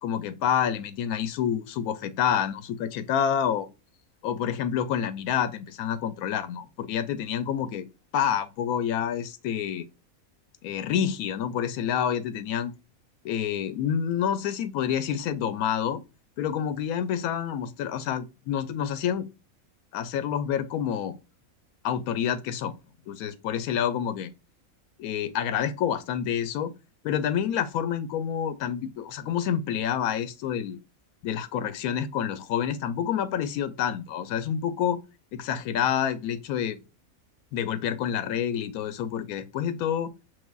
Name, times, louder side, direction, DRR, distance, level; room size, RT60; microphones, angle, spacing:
voice 1, 0.0-3.7 4.2-7.8 8.1-9.8 10.6-12.7 13.2-16.0 16.4-19.3 19.9-21.1 21.8-22.7 23.1-24.3 25.0-26.7 27.0-30.8 31.2-35.0 35.3-36.8 37.5-40.1, left 9 dB, 85° left, 1.0 m, -28 dB
5.3 x 3.1 x 2.3 m
omnidirectional pair, 1.5 m